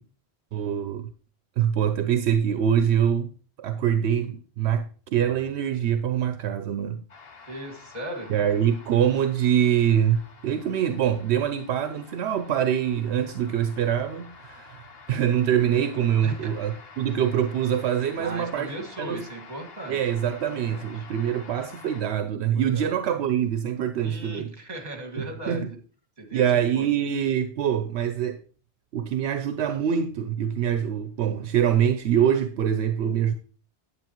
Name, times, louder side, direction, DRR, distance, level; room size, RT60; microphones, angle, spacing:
voice 1, 0.5-1.1 1.6-3.3 3.6-7.0 8.3-14.8 15.1-18.7 19.0-19.2 19.9-24.5 25.2-25.7 26.3-28.4 28.9-33.3, right 9 dB, 80° right, 0.8 m, -24 dB
sound 1, 7.1-22.0, left 5 dB, 65° left, 1.1 m, -48 dB
voice 2, 7.5-8.3 16.2-16.7 18.2-20.0 20.5-21.1 22.6-22.9 24.0-25.8 26.2-26.5 26.7-26.9, right 1 dB, 40° right, 2.0 m, -37 dB
9.5 x 8.4 x 3.0 m
omnidirectional pair, 1.1 m